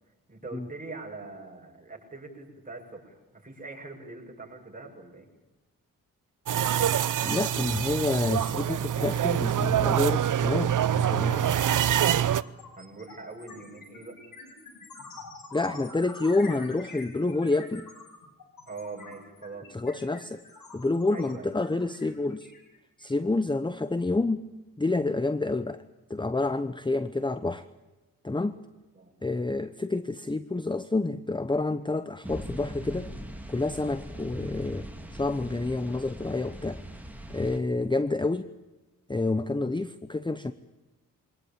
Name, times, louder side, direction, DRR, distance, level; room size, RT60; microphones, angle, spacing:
voice 1, 0.3-5.3 12.8-14.2 18.7-20.0 21.1-21.5 28.9-29.1, right 3 dB, 25° right, 0 dB, 7.5 m, -43 dB
sound 1, 6.5-12.4, right 10 dB, 60° right, 0.7 m, -25 dB
voice 2, 7.2-11.4 15.5-17.9 19.7-20.4 20.7-22.5 23.0-24.5 24.8-25.8 26.1-27.7 28.2-28.6 29.2-33.1 33.5-36.8 37.3-38.5 39.1-40.5, left 2 dB, 15° left, 13 dB, 0.9 m, -28 dB
sound 2, 8.4-8.6 8.8-23.2, left 3 dB, 70° left, 6.8 m, -47 dB
sound 3, 32.2-37.6, right 1 dB, 5° right, 3.7 m, -41 dB
23.5 x 19.5 x 8.8 m, 1.2 s
cardioid pair, 65°, 34 cm